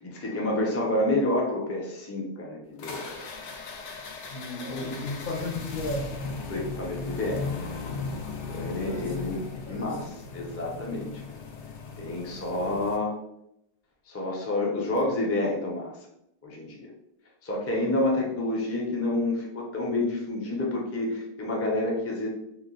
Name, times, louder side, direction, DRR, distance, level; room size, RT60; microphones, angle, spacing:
voice 1, 0.0-3.1 4.6-5.0 6.5-7.5 8.5-11.4 12.0-13.2 14.1-16.0 16.4-16.9 17.4-22.3, left 2 dB, 20° left, -2 dB, 0.4 m, -29 dB
sound 1, 2.8-13.0, left 3 dB, 90° left, 0.9 m, -37 dB
voice 2, 4.3-6.1 8.5-10.0, left 2 dB, 55° left, 0 dB, 0.7 m, -35 dB
2.9 x 2.0 x 3.7 m, 0.81 s
omnidirectional pair, 1.2 m